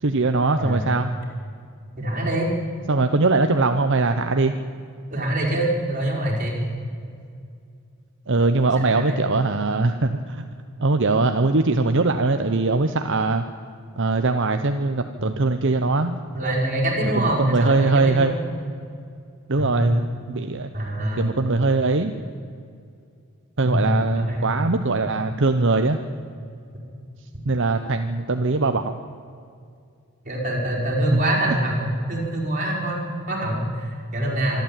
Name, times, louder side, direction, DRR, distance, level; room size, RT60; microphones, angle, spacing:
voice 1, 0.0-1.1 2.9-4.5 8.3-10.5 10.8-13.4 14.0-16.2 17.0-18.4 19.5-20.7 21.2-22.1 23.6-26.0 27.4-28.9 31.1-31.2 31.5-31.6, right 3 dB, 55° right, 7 dB, 0.9 m, -21 dB
voice 2, 0.6-0.9 2.0-2.5 5.1-6.6 8.7-9.2 16.3-18.5 19.6-19.8 20.7-21.4 23.6-24.7 30.2-34.6, right 1 dB, 35° right, -3 dB, 5.2 m, -25 dB
25.5 x 12.0 x 9.0 m, 2.4 s
head